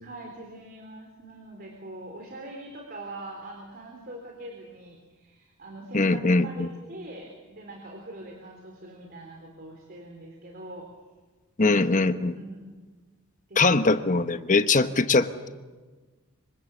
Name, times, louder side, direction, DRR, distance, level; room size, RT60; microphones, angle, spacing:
voice 1, 0.0-10.9 12.4-12.6 13.5-13.7, right 1 dB, 45° right, 2 dB, 3.7 m, -42 dB
voice 2, 5.9-6.7 11.6-12.4 13.6-15.5, left 3 dB, 40° left, 10 dB, 1.0 m, -22 dB
26.0 x 24.5 x 7.3 m, 1.3 s
head